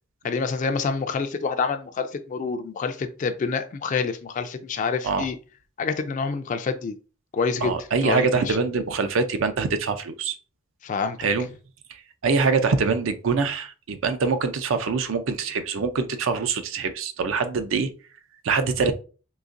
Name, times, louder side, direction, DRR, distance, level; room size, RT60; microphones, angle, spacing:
voice 1, 0.2-5.4 5.8-7.0 7.3-7.7 8.0-8.6 10.8-11.2, left 5 dB, 40° left, 0.3 m, -27 dB
voice 2, 7.6-10.4 11.2-11.5 11.9-17.9 18.4-18.9, right 4 dB, 75° right, 0.4 m, -24 dB
3.9 x 2.8 x 2.5 m
head